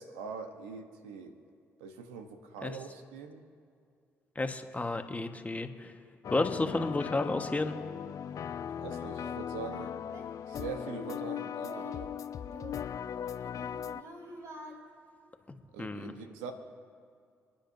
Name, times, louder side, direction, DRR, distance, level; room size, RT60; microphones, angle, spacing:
voice 1, 0.0-1.4 1.8-3.4 8.8-9.9 10.5-12.1 15.7-16.5, right 5 dB, 85° right, 6 dB, 1.0 m, -43 dB
voice 2, 4.3-5.9 6.3-7.7 15.8-16.1, left 2 dB, 20° left, 6 dB, 1.4 m, -31 dB
sound 1, 6.2-14.0, left 9 dB, 55° left, 0.4 m, -38 dB
Singing, 8.3-8.4 8.9-12.1 12.4-14.7, right 2 dB, 50° right, 3.2 m, -49 dB
29.0 x 10.0 x 2.7 m, 2.3 s
hypercardioid pair, 45°, 7 cm